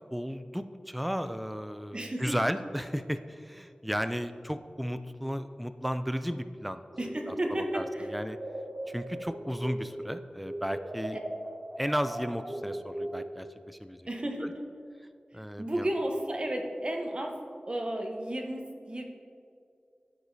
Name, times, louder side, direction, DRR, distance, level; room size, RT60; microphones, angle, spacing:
voice 1, 0.1-6.8 7.7-8.4 8.9-11.2 11.8-14.1 14.4-14.5 15.3-15.9, equal, ahead, 10 dB, 0.3 m, -34 dB
voice 2, 1.9-2.4 7.0-8.1 14.1-14.6 15.6-17.4 17.7-19.0, right 1 dB, 35° right, 2 dB, 0.9 m, -33 dB
sound 1, 6.9-10.1 10.4-13.4, right 1 dB, 60° right, 1.7 m, -39 dB
13.5 x 4.8 x 2.7 m, 2.4 s
wide cardioid pair, 65°, 3 cm